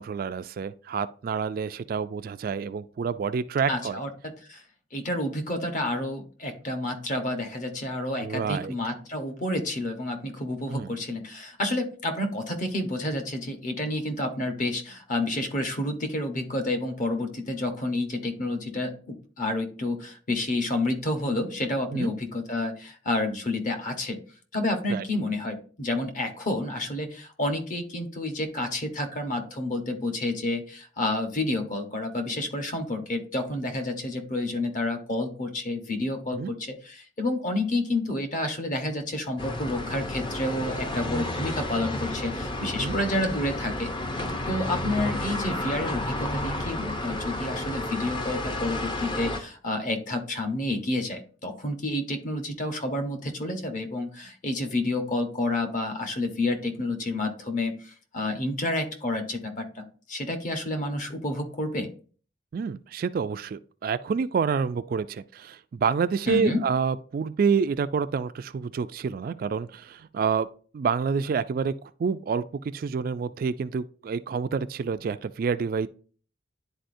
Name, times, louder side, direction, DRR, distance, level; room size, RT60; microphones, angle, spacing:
voice 1, 0.0-4.0 8.2-8.7 10.7-10.9 21.9-22.1 24.9-25.0 36.3-36.5 42.8-43.0 62.5-70.5 70.7-71.7 72.0-72.4 72.7-75.9, right 6 dB, 50° right, 0.3 m, -28 dB
voice 2, 3.7-4.6 4.9-24.2 24.5-43.9 44.5-61.9 66.3-66.6, left 1 dB, 45° left, 1.1 m, -29 dB
sound 1, 39.4-49.4, left 1 dB, 25° left, 0.7 m, -31 dB
10.5 x 4.1 x 2.6 m
head